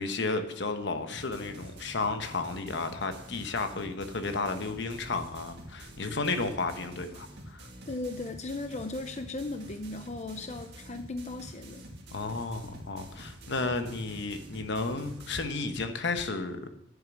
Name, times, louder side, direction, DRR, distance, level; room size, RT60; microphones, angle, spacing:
voice 1, 0.0-7.7 12.1-16.7, left 3 dB, 65° left, 7 dB, 1.0 m, -33 dB
sound 1, 1.1-15.4, right 1 dB, 60° right, 2.1 m, -47 dB
voice 2, 7.9-11.9, left 2 dB, 40° left, 7 dB, 0.6 m, -37 dB
10.5 x 7.3 x 6.1 m, 0.79 s
head